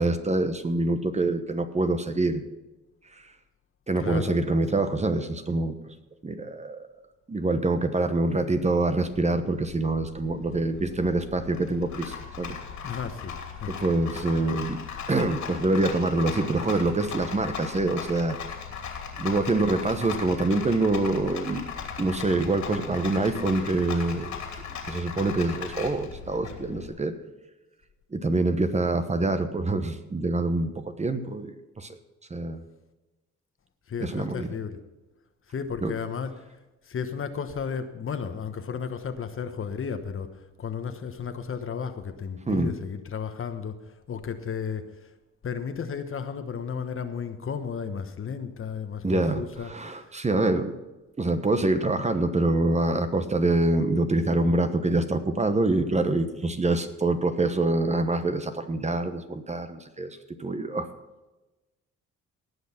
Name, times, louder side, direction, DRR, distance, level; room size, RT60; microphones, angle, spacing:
voice 1, 0.0-2.4 3.1-3.2 3.9-5.9 6.2-6.8 7.3-12.6 13.7-14.8 15.1-18.4 19.2-21.7 22.0-27.1 28.1-32.0 32.3-32.6 34.0-34.5 35.8-35.9 42.5-42.7 49.0-50.7 51.2-60.9, right 2 dB, 20° right, 9 dB, 1.1 m, -25 dB
voice 2, 4.0-4.4 12.8-13.8 33.9-34.8 35.5-36.3 36.9-40.3 40.6-43.7 44.1-44.9 45.4-50.1 50.4-50.5, left 6 dB, 45° left, 9 dB, 1.2 m, -33 dB
Rattle, 8.3-26.9, left 6 dB, 70° left, 2.8 m, -38 dB
18.0 x 6.4 x 5.9 m, 1.1 s
cardioid pair, 90°, 30 cm